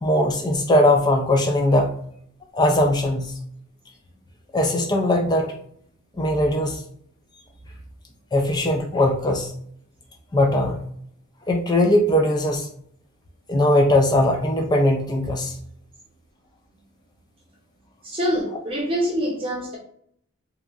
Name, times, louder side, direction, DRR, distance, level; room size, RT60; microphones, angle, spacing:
voice 1, 0.0-1.9 2.5-3.4 4.5-5.6 6.2-6.8 8.3-9.5 10.3-10.8 11.5-12.7 13.5-15.6, left 1 dB, 20° left, 3 dB, 0.3 m, -20 dB
voice 2, 18.0-19.8, equal, 25° right, -3 dB, 0.6 m, -25 dB
2.9 x 2.4 x 2.3 m, 0.66 s
head